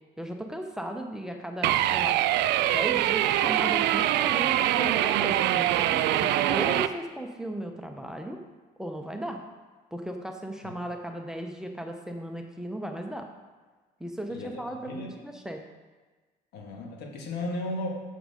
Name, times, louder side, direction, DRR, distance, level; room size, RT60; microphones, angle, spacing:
voice 1, 0.2-2.2 2.7-8.4 8.8-9.4 9.9-13.3 14.0-15.6, right 1 dB, 5° right, 3 dB, 0.8 m, -36 dB
sound 1, 1.6-6.9, right 13 dB, 80° right, 0.4 m, -24 dB
voice 2, 14.3-14.6 14.9-15.1 16.5-17.9, left 1 dB, 75° left, 1 dB, 1.8 m, -34 dB
7.8 x 6.5 x 5.0 m, 1.3 s
cardioid pair, 110°, 17 cm